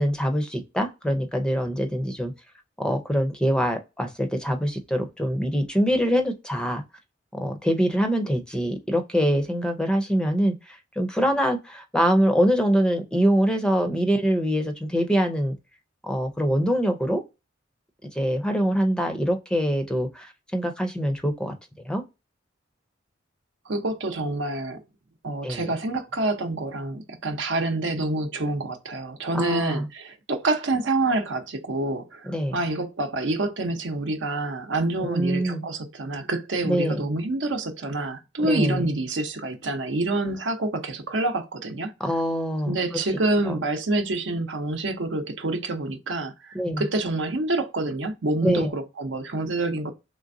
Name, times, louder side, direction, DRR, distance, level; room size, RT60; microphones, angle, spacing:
voice 1, 0.0-2.3 2.8-6.8 7.4-15.6 16.0-17.2 18.1-21.5 21.8-22.0 25.4-25.7 29.3-29.9 32.3-32.6 35.0-35.6 36.6-37.0 38.4-38.9 42.0-43.0 43.5-43.6 46.5-46.8 48.4-48.7, equal, 5° left, 0.5 m, -24 dB
voice 2, 23.7-24.8 25.2-41.9 42.6-49.9, right 2 dB, 75° right, 0.7 m, -27 dB
3.8 x 3.3 x 2.6 m
head